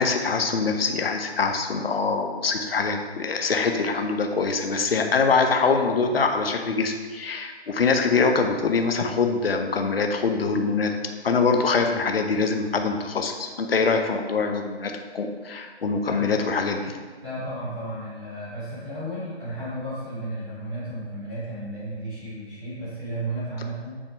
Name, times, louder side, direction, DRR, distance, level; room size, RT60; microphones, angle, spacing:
voice 1, 0.0-10.9 11.2-16.9, left 4 dB, 60° left, 5 dB, 1.0 m, -24 dB
voice 2, 17.2-23.9, right 1 dB, ahead, -23 dB, 0.6 m, -33 dB
8.9 x 3.5 x 4.5 m, 1.4 s
hypercardioid pair, 165°, 33 cm